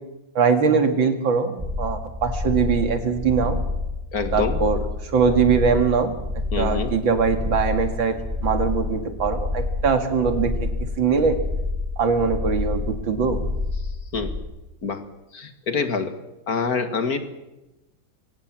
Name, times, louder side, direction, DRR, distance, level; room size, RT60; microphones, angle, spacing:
voice 1, 0.3-3.6 4.3-6.1 6.6-8.2 8.4-10.7 11.0-11.4 12.0-13.4, right 5 dB, 75° right, 7 dB, 2.8 m, -22 dB
sound 1, 1.6-14.4, left 3 dB, 10° right, 3.8 m, -28 dB
voice 2, 4.1-4.6 6.5-7.0 14.1-14.3 14.8-15.0 15.3-16.2 16.5-17.2, left 5 dB, 50° left, 8 dB, 2.0 m, -26 dB
23.5 x 17.5 x 7.5 m, 0.99 s
omnidirectional pair, 2.1 m